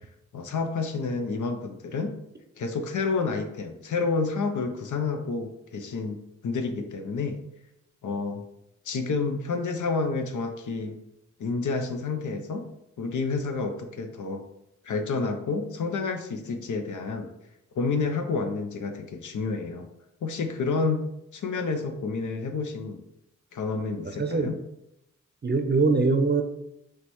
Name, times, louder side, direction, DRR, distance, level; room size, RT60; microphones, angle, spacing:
voice 1, 0.3-2.2 2.6-7.4 8.0-8.4 8.9-11.0 11.4-12.7 13.0-14.4 14.8-17.3 17.7-19.9 20.2-21.1 21.3-23.0 23.5-24.6, left 4 dB, 70° left, 6 dB, 0.6 m, -29 dB
voice 2, 24.2-24.6 25.4-26.4, right 4 dB, 35° right, 6 dB, 0.6 m, -22 dB
5.0 x 3.1 x 3.0 m, 0.84 s
cardioid pair, 55°, 31 cm